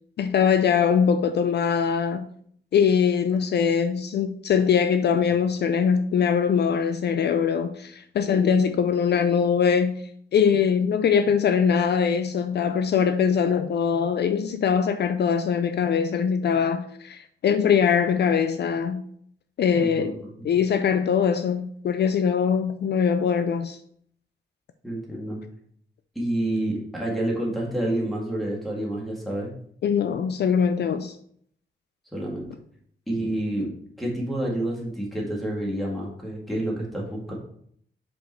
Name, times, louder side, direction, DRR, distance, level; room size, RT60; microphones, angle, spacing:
voice 1, 0.2-2.3 2.7-19.0 19.6-20.2 20.4-23.8 29.8-31.2, left 7 dB, 60° left, 0.4 m, -22 dB
voice 2, 19.8-20.5 24.8-25.4 26.2-29.5 32.1-32.5 33.1-33.7 34.0-37.3, right 1 dB, ahead, 1.9 m, -28 dB
5.1 x 5.0 x 4.4 m
wide cardioid pair, 145°, 19 cm